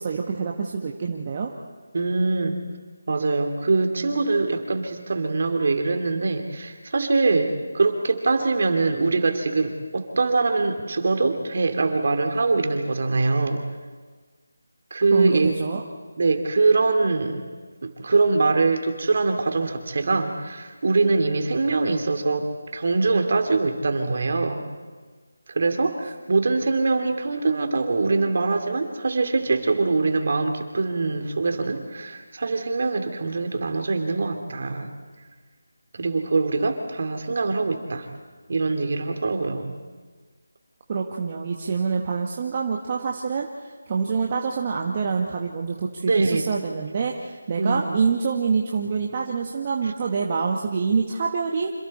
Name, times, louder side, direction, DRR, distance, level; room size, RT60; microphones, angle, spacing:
voice 1, 0.0-1.5 15.1-15.8 40.9-51.7, right 5 dB, 30° right, 0 dB, 1.4 m, -26 dB
voice 2, 1.9-2.6 3.1-13.6 14.9-15.5 16.2-17.4 17.8-24.7 25.5-34.9 35.9-38.1 38.5-39.7 46.0-46.5 47.6-48.0 49.8-49.9, right 3 dB, 50° right, 5 dB, 2.8 m, -23 dB
28.0 x 27.0 x 4.3 m, 1.4 s
figure-of-eight pair, 170°, 0 cm